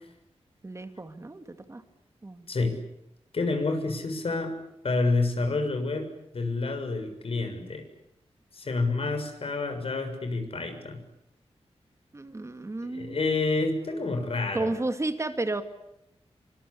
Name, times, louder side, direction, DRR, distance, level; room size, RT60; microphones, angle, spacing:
voice 1, 0.6-1.8 2.2-2.5 12.1-13.3 13.8-14.0 14.5-15.6, right 2 dB, 25° right, 8 dB, 2.3 m, -32 dB
voice 2, 3.3-4.5 4.8-7.8 8.5-11.0 12.8-14.7, left 3 dB, 60° left, 7 dB, 6.8 m, -28 dB
27.5 x 25.0 x 8.6 m, 0.84 s
wide cardioid pair, 125°, 11 cm